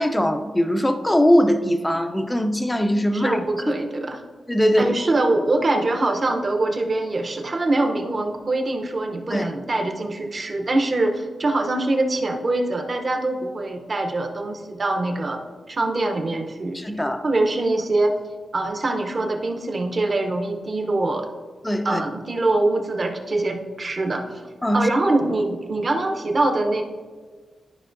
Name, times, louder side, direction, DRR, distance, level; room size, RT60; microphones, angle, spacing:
voice 1, 0.0-3.4 4.5-4.9 9.3-9.5 16.7-17.2 21.6-22.0 24.6-24.9, equal, 10° left, 7 dB, 0.4 m, -21 dB
voice 2, 3.1-4.2 4.8-15.4 15.7-18.2 18.5-21.3 21.8-24.4 24.7-26.8, right 2 dB, 35° right, 3 dB, 0.7 m, -23 dB
12.5 x 5.3 x 2.6 m, 1.5 s
wide cardioid pair, 170°, 0 cm